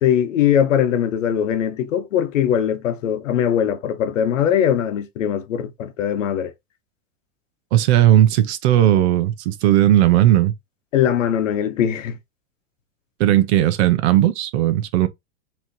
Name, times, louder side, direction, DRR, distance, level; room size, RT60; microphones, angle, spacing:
voice 1, 0.0-6.5 10.9-12.2, left 9 dB, 90° left, 1.0 m, -20 dB
voice 2, 7.7-10.5 13.2-15.1, right 12 dB, 60° right, 0.9 m, -16 dB
4.4 x 3.0 x 2.8 m
supercardioid pair, 130°, 37 cm